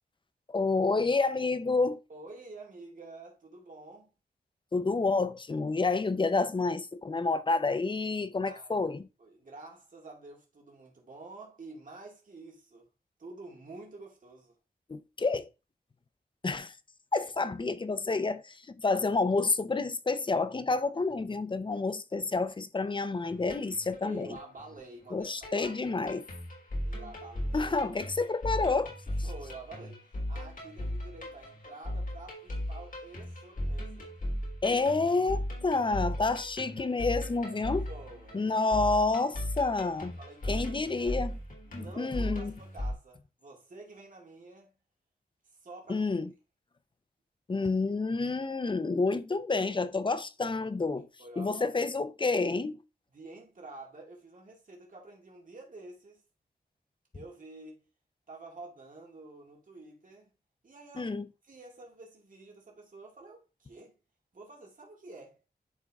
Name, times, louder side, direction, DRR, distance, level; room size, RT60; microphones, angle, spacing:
voice 1, 0.5-2.0 4.7-9.1 14.9-15.5 16.4-16.7 17.1-24.4 25.1-26.2 27.5-28.9 34.6-37.8 38.3-40.1 40.5-41.4 41.7-42.5 45.9-46.3 47.5-51.1 51.4-52.8 61.0-61.2, left 3 dB, 30° left, 0.6 m, -29 dB
voice 2, 2.1-4.1 8.4-8.8 9.2-12.9 13.2-14.6 24.0-25.8 26.8-27.7 29.1-34.1 37.6-38.5 40.2-41.2 41.6-44.7 45.6-46.1 51.2-51.8 53.1-56.2 57.1-57.8 58.3-60.3 60.6-61.1 61.4-64.0 64.3-65.4, right 2 dB, 50° right, 2.3 m, -49 dB
sound 1, 23.3-42.9, equal, 55° left, 3.3 m, -37 dB
10.5 x 3.6 x 3.5 m
wide cardioid pair, 130°, 17 cm